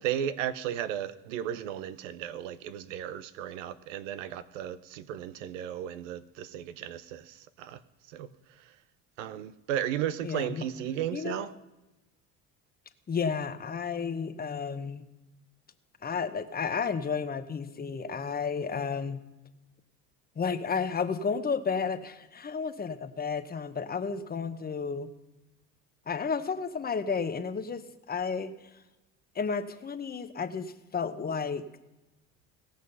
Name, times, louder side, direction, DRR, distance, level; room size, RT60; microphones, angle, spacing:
voice 1, 0.0-7.8 8.1-8.3 9.2-11.5, right 10 dB, 90° right, 14 dB, 0.7 m, -34 dB
voice 2, 10.2-10.7 11.1-11.5 13.1-15.0 16.0-19.2 20.4-25.1 26.1-28.5 29.3-31.7, left 5 dB, 25° left, 9 dB, 1.0 m, -32 dB
17.5 x 6.3 x 5.5 m, 1.0 s
supercardioid pair, 80°, 37 cm